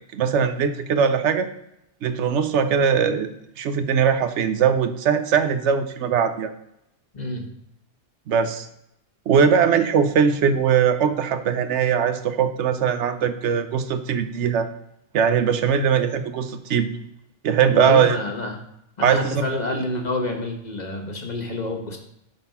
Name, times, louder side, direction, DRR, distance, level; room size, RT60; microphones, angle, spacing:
voice 1, 0.1-1.5 2.0-3.3 3.6-6.5 8.3-8.7 9.3-14.7 15.1-16.9 17.4-18.2 19.0-19.5, right 7 dB, 90° right, 10 dB, 1.0 m, -20 dB
voice 2, 17.6-18.6 19.0-22.0, left 2 dB, 40° left, 2 dB, 1.2 m, -28 dB
7.6 x 4.1 x 5.6 m, 0.81 s
omnidirectional pair, 1.2 m